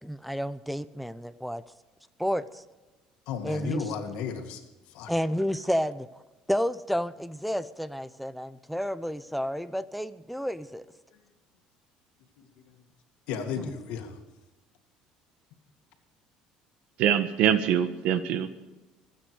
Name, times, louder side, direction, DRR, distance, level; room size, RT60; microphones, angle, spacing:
voice 1, 0.0-1.6 2.2-2.6 3.4-3.8 5.1-6.1 6.5-10.8 13.6-13.8, equal, ahead, 15 dB, 0.7 m, -30 dB
voice 2, 3.3-4.6 4.9-5.1 12.4-12.5 13.3-14.2, left 6 dB, 75° left, 5 dB, 2.3 m, -34 dB
voice 3, 17.0-18.5, right 9 dB, 70° right, 11 dB, 1.4 m, -24 dB
26.0 x 9.2 x 4.9 m, 1.1 s
cardioid pair, 135°, 2 cm